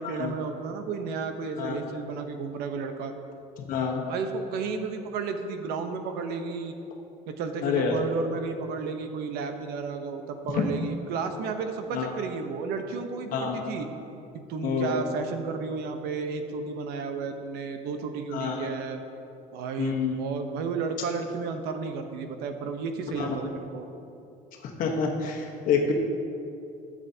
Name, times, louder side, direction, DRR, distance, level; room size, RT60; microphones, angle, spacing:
voice 1, 0.0-3.1 4.1-6.8 7.3-13.9 14.5-19.0 19.5-23.9, right 5 dB, 75° right, 6 dB, 0.9 m, -32 dB
voice 2, 3.6-4.0 7.6-7.9 10.5-10.6 11.9-12.1 13.3-13.6 14.6-15.0 18.3-18.7 19.8-20.2 23.2-23.4 24.8-25.9, left 6 dB, 55° left, 1 dB, 1.2 m, -27 dB
13.0 x 7.6 x 2.8 m, 2.7 s
cardioid pair, 145°, 17 cm